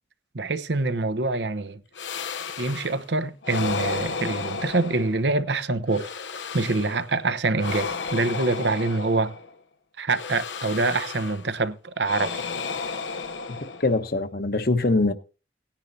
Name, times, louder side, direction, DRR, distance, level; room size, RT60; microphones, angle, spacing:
voice 1, 0.3-1.8 2.6-6.1 6.5-9.3 10.0-12.4, right 3 dB, 75° right, 0.9 m, -25 dB
sound 1, 2.0-3.0 3.4-5.4 5.9-7.1 7.6-9.6 10.1-11.5 12.0-14.1, left 5 dB, 90° left, 0.8 m, -33 dB
voice 2, 13.8-15.1, left 2 dB, 55° left, 1.0 m, -22 dB
18.0 x 10.0 x 2.7 m
head